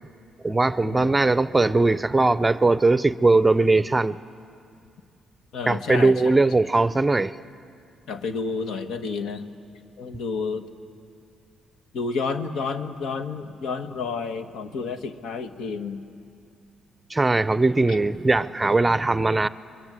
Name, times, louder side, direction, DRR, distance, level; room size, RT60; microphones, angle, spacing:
voice 1, 0.4-4.2 5.7-7.4 17.1-19.5, right 3 dB, 15° right, 0.6 m, -20 dB
voice 2, 5.5-6.2 8.1-9.5 10.0-10.6 11.9-16.0, left 4 dB, 75° left, 1.5 m, -30 dB
30.0 x 23.0 x 8.1 m
cardioid pair, 90°, 0 cm